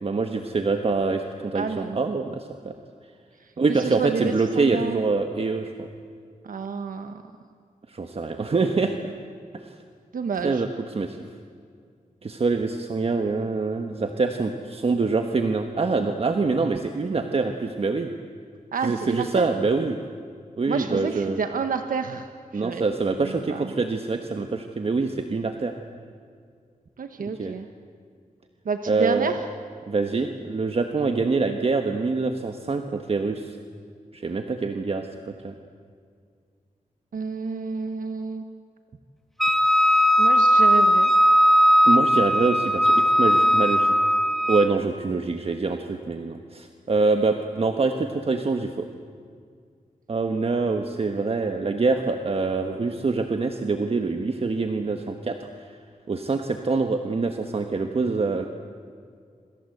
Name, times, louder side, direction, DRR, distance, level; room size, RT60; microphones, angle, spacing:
voice 1, 0.0-2.7 3.6-5.9 7.9-9.1 9.5-9.7 10.4-10.7 10.9-11.2 12.2-18.1 18.8-20.0 20.6-21.4 22.5-25.7 27.4-27.5 28.9-29.3 29.9-33.6 34.1-35.5 41.9-43.9 44.5-48.9 50.1-55.5 56.1-58.4, right 4 dB, 45° right, 6 dB, 1.4 m, -25 dB
voice 2, 1.5-2.0 3.4-5.0 6.4-7.2 10.1-10.6 18.7-19.5 20.7-22.9 23.2-23.8 27.0-27.7 28.6-29.4 37.1-38.4 40.2-41.1, right 5 dB, 80° right, 7 dB, 1.2 m, -30 dB
Wind instrument woodwind instrument, 39.4-44.8, equal, ahead, 1.5 m, -18 dB
27.0 x 26.0 x 8.0 m, 2.1 s
wide cardioid pair, 125°, 14 cm